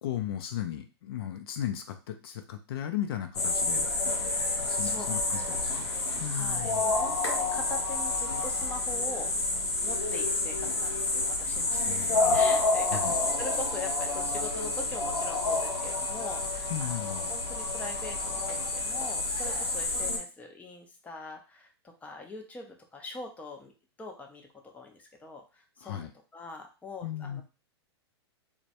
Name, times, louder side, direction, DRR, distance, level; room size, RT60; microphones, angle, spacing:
voice 1, 0.0-3.9 4.6-5.9 6.2-6.9 11.9-12.5 12.9-13.1 16.7-17.3 25.8-26.1 27.0-27.4, left 11 dB, 65° left, 6 dB, 0.4 m, -36 dB
sound 1, 3.3-20.2, left 2 dB, 80° left, 0.9 m, -29 dB
voice 2, 4.8-5.6 6.3-9.3 9.8-11.9 12.3-23.7 24.0-27.4, left 3 dB, 10° left, 2 dB, 0.5 m, -43 dB
2.2 x 2.1 x 2.8 m, 0.33 s
hypercardioid pair, 110°, 14 cm